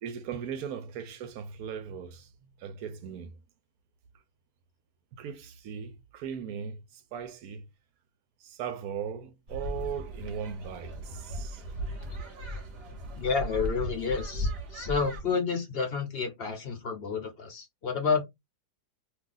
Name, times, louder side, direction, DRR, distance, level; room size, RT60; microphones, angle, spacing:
voice 1, 0.0-2.3 2.6-3.4 5.1-7.7 8.4-11.6 12.9-13.0, right 7 dB, 75° right, 1.0 m, -38 dB
sound 1, 9.5-15.2, equal, 45° right, 1.0 m, -36 dB
voice 2, 13.1-18.2, left 5 dB, 50° left, 0.8 m, -30 dB
2.8 x 2.4 x 3.7 m
omnidirectional pair, 1.7 m